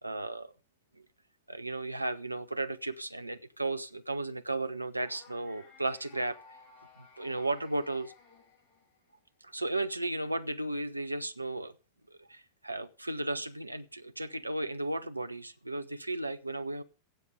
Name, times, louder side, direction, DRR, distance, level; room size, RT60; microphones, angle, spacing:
voice 1, 0.0-0.5 1.5-6.4 7.0-8.1 9.4-11.7 12.1-16.8, right 2 dB, 85° right, 10 dB, 0.8 m, -35 dB
sound 1, 5.0-9.2, left 3 dB, 30° left, 5.4 m, -56 dB
16.0 x 8.3 x 5.1 m, 0.32 s
figure-of-eight pair, 90°, 0 cm